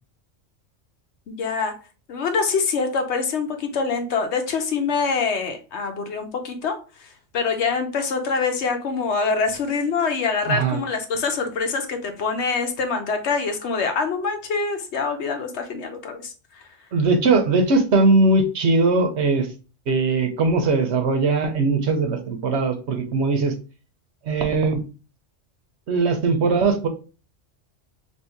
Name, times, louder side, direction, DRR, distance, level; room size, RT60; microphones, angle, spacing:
voice 1, 1.3-1.7 2.1-7.1 7.3-16.6, left 5 dB, 65° left, 6 dB, 1.0 m, -25 dB
voice 2, 10.5-10.8 16.9-19.5 19.9-23.5 24.2-24.8 25.9-26.9, right 3 dB, 65° right, 6 dB, 1.0 m, -20 dB
3.0 x 2.7 x 4.4 m, 0.34 s
omnidirectional pair, 1.3 m